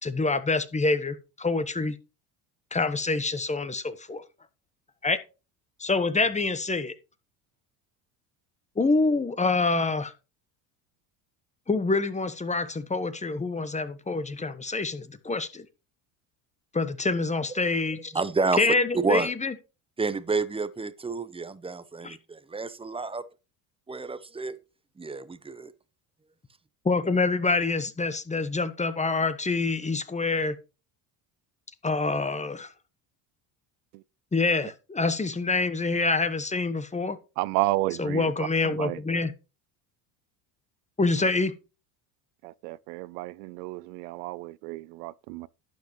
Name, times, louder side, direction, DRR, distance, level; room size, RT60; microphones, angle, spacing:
voice 1, 0.0-1.9 2.7-4.2 5.0-5.2 5.8-6.9 8.8-10.1 11.7-15.7 16.7-18.1 18.6-19.5 22.0-22.2 26.8-30.5 31.8-32.7 34.3-37.2 38.0-39.3 41.0-41.6, left 3 dB, 15° left, 1.1 m, -26 dB
voice 2, 18.1-18.7 18.9-19.3 20.0-23.2 23.9-24.6 25.0-25.7, right 4 dB, 10° right, 0.8 m, -29 dB
voice 3, 37.4-38.3 38.6-39.0 42.4-45.5, right 19 dB, 85° right, 0.5 m, -31 dB
11.5 x 8.2 x 3.1 m
supercardioid pair, 90°, 47 cm